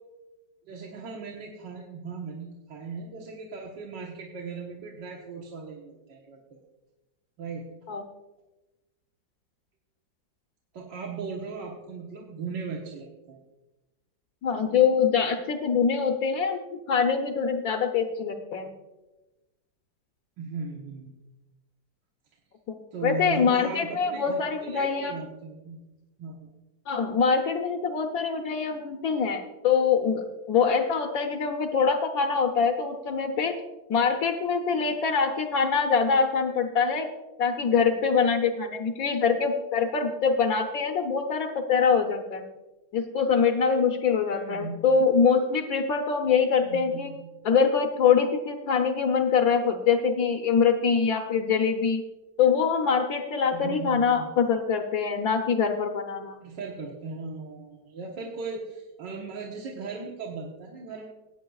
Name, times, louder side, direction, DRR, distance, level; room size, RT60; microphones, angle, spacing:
voice 1, 0.7-6.6 7.4-7.7 10.7-13.4 20.4-21.1 22.9-25.8 26.2-26.5 44.3-44.8 46.6-47.4 53.5-54.3 56.4-61.0, right 4 dB, 70° right, -2 dB, 1.8 m, -38 dB
voice 2, 14.4-16.6 16.9-18.7 22.7-25.2 26.9-33.6 33.9-37.1 37.4-42.4 42.9-47.1 47.4-52.0 52.4-56.3, left 6 dB, 60° left, 2 dB, 1.1 m, -24 dB
17.5 x 9.0 x 2.3 m, 1.1 s
omnidirectional pair, 2.0 m